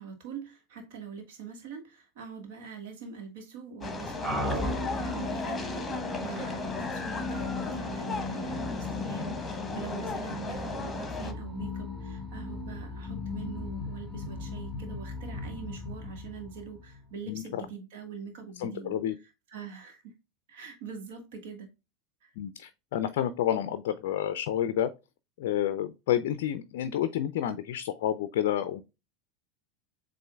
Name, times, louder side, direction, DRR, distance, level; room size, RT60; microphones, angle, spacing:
voice 1, 0.0-18.9 19.5-20.1 20.5-21.7 22.2-22.3, right 6 dB, 60° right, 1.4 m, -43 dB
sound 1, 3.8-11.3, left 3 dB, 15° left, 1.1 m, -36 dB
sound 2, 4.2-17.1, left 2 dB, 15° right, 1.8 m, -37 dB
voice 2, 17.3-17.7 18.6-19.1 22.4-24.9 25.4-28.8, left 11 dB, 60° left, 0.4 m, -29 dB
7.3 x 2.5 x 2.3 m
figure-of-eight pair, 80°, 0 cm